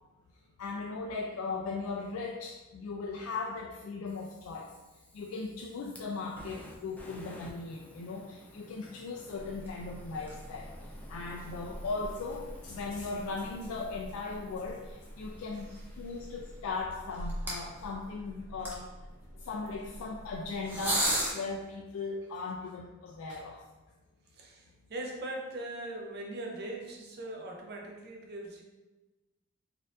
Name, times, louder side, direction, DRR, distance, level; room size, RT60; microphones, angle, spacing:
voice 1, 0.6-4.7 5.1-10.7 11.1-18.9 19.3-23.6, left 3 dB, 85° left, 0 dB, 0.3 m, -38 dB
Fire, 4.1-17.2, left 1 dB, 5° left, 0.4 m, -54 dB
sound 1, 9.4-21.3, right 1 dB, 10° right, 0.7 m, -39 dB
voice 2, 24.3-28.6, right 1 dB, 50° right, 1 dB, 0.6 m, -41 dB
4.2 x 2.5 x 2.4 m, 1.1 s
head